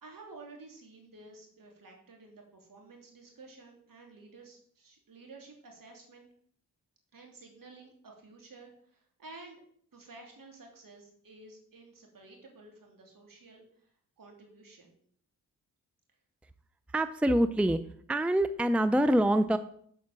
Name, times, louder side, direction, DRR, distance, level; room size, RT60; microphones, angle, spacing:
voice 1, 0.0-6.3 7.1-9.6 9.9-13.9 14.2-15.0, right 3 dB, 60° right, 1 dB, 3.2 m, -52 dB
voice 2, 16.9-17.8 18.1-19.6, right 1 dB, 5° right, 12 dB, 0.5 m, -25 dB
7.2 x 5.7 x 7.5 m, 0.63 s
supercardioid pair, 50°, 38 cm